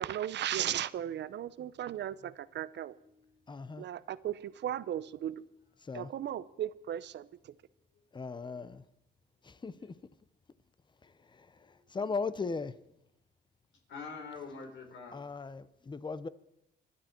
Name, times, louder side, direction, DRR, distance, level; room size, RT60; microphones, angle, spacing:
voice 1, 0.0-2.9 3.8-5.5 5.9-7.6, right 11 dB, 65° right, 0.7 m, -36 dB
voice 2, 3.5-3.8 5.8-6.1 8.1-8.8 9.4-10.0 11.0-12.7 15.1-16.3, left 4 dB, 25° left, 0.8 m, -38 dB
voice 3, 11.6-12.1 13.9-15.2, left 4 dB, 70° left, 4.5 m, -46 dB
26.0 x 11.5 x 4.5 m
cardioid pair, 90°, 20 cm